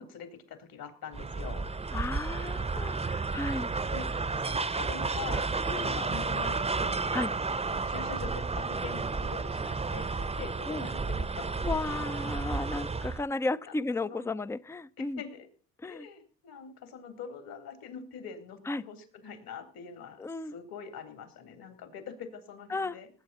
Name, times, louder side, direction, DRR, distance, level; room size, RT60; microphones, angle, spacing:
voice 1, 0.0-1.7 3.9-4.1 4.4-7.0 7.6-11.9 14.0-14.3 15.0-15.5 15.8-19.0 19.2-23.1, left 6 dB, 60° left, 8 dB, 3.6 m, -44 dB
sound 1, 1.1-13.2, right 4 dB, 15° right, 0.8 m, -32 dB
voice 2, 1.9-3.7 5.7-6.0 7.1-7.3 10.6-10.9 11.6-15.2 15.8-16.1 18.7-18.8 20.2-20.5 22.7-23.0, left 3 dB, 5° left, 17 dB, 0.5 m, -34 dB
19.5 x 8.7 x 4.2 m, 0.40 s
supercardioid pair, 75°, 39 cm